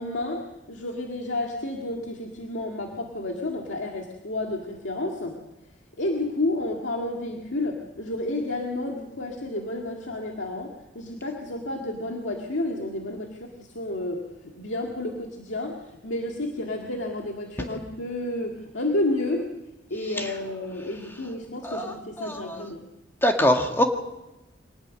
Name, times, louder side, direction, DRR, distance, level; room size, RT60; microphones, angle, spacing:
voice 1, 0.0-5.4 6.0-19.5 19.9-22.9, left 2 dB, 90° left, 1 dB, 2.0 m, -31 dB
voice 2, 22.2-22.6 23.2-23.8, left 1 dB, 10° left, 3 dB, 1.9 m, -23 dB
25.0 x 19.0 x 6.5 m, 0.99 s
head